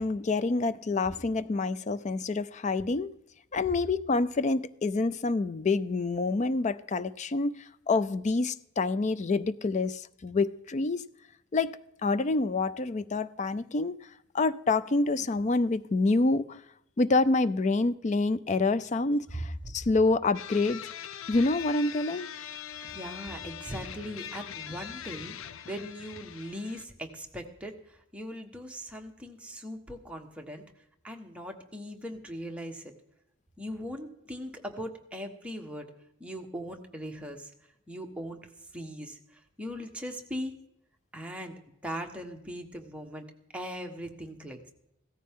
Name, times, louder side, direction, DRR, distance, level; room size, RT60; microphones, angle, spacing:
voice 1, 0.0-3.1 3.5-11.0 11.5-11.7 12.0-14.1 14.3-16.6 17.0-20.8 21.3-22.3, left 3 dB, 35° left, 15 dB, 0.4 m, -27 dB
sound 1, 20.3-26.8, left 9 dB, 90° left, 0.6 m, -42 dB
voice 2, 22.8-30.6 31.0-32.9 33.6-35.9 36.2-37.5 37.9-38.4 38.7-40.6 41.1-41.6 41.8-44.7, equal, 5° right, 2 dB, 1.3 m, -40 dB
16.0 x 13.5 x 3.7 m, 0.79 s
head